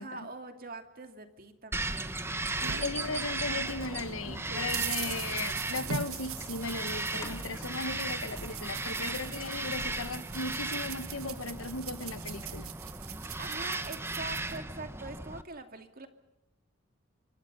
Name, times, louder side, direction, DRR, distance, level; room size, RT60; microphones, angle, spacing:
voice 1, 0.0-2.3 13.1-16.1, right 3 dB, 45° right, 6 dB, 2.4 m, -44 dB
Bird vocalization bird call bird song, 1.7-15.4, right 2 dB, 10° right, 1.0 m, -36 dB
sound 1, 1.8-3.7 4.1-14.6, right 8 dB, 85° right, 1.5 m, -42 dB
voice 2, 2.8-12.7, left 3 dB, 70° left, 13 dB, 1.2 m, -37 dB
sound 2, 3.3-10.1, left 1 dB, 15° left, 2.3 m, -51 dB
27.5 x 25.0 x 5.4 m, 0.95 s
head